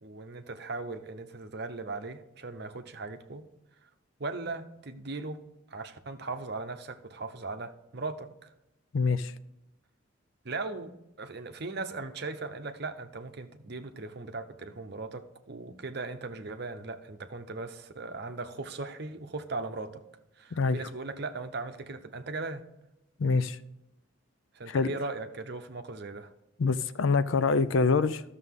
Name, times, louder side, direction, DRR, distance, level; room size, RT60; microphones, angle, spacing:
voice 1, 0.0-3.5 4.2-5.4 5.7-8.5 10.4-20.0 20.4-22.6 24.5-26.3, right 3 dB, 55° right, 8 dB, 0.8 m, -38 dB
voice 2, 8.9-9.3 20.5-20.9 23.2-23.6 24.7-24.9 26.6-28.2, left 4 dB, 75° left, 14 dB, 0.5 m, -25 dB
13.0 x 6.7 x 3.7 m, 0.90 s
head